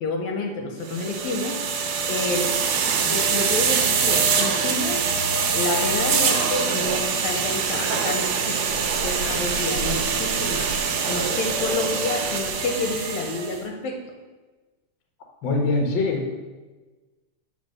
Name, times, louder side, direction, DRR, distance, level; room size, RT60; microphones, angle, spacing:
voice 1, 0.0-1.6 2.1-2.5 3.0-5.0 5.5-10.7 11.1-14.0, left 3 dB, 75° left, 3 dB, 1.9 m, -29 dB
sound 1, 0.9-13.6, right 5 dB, 75° right, 2.0 m, -24 dB
voice 2, 15.4-16.3, left 3 dB, 50° left, 1 dB, 1.5 m, -23 dB
7.1 x 4.7 x 6.5 m, 1.3 s
omnidirectional pair, 3.5 m